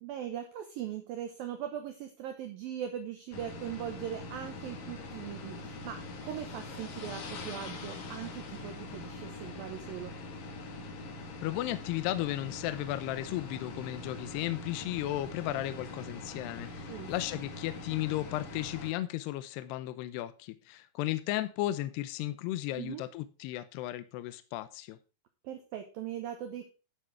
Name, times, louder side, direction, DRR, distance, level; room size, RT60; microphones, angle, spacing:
voice 1, 0.0-10.2 16.9-17.1 22.7-23.0 25.4-26.7, right 10 dB, 70° right, 6 dB, 2.4 m, -40 dB
sound 1, 3.3-18.9, left 2 dB, 55° left, 3.1 m, -43 dB
voice 2, 11.4-25.0, left 15 dB, 75° left, 13 dB, 2.6 m, -35 dB
11.5 x 7.7 x 4.7 m, 0.32 s
omnidirectional pair, 5.2 m